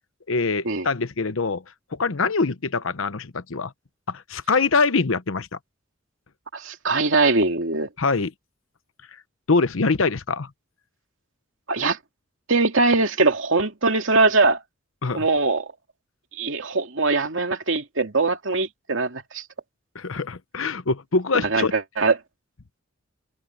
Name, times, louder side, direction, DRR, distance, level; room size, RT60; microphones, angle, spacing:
voice 1, 0.3-1.6 1.9-3.7 4.1-5.5 8.0-8.3 9.5-10.5 15.0-15.2 19.9-21.7, left 4 dB, 85° left, 0.9 m, -23 dB
voice 2, 6.5-7.9 11.7-12.0 12.5-14.6 15.1-15.7 16.4-19.4 21.5-22.1, right 3 dB, 70° right, 2.5 m, -21 dB
head